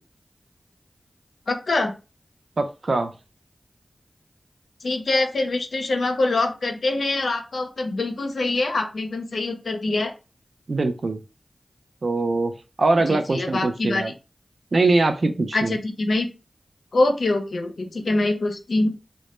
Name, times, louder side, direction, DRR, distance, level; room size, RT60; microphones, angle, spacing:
voice 1, 1.5-1.9 4.8-10.1 13.1-14.1 15.5-16.3 16.9-18.9, left 2 dB, 80° left, 5 dB, 0.5 m, -24 dB
voice 2, 2.6-3.1 10.7-11.2 12.0-12.5 12.8-14.1 14.7-15.8, right 3 dB, 70° right, 6 dB, 0.4 m, -22 dB
2.1 x 2.0 x 2.9 m, 0.30 s
cardioid pair, 45°, 0 cm